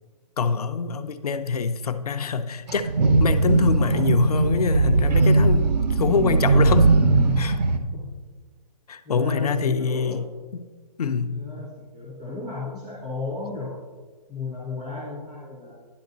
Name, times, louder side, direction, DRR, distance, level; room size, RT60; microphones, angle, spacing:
voice 1, 0.4-2.9 3.2-7.0 7.4-7.6 8.9-10.3 10.5-10.7 11.0-11.4, left 5 dB, 65° left, 9 dB, 0.7 m, -25 dB
sound 1, 2.7-7.8, right 3 dB, 90° right, 0.8 m, -19 dB
voice 2, 9.0-10.2 11.3-13.8 14.3-15.8, left 3 dB, ahead, -8 dB, 0.4 m, -34 dB
10.5 x 6.0 x 3.9 m, 1.4 s
hypercardioid pair, 180°, 21 cm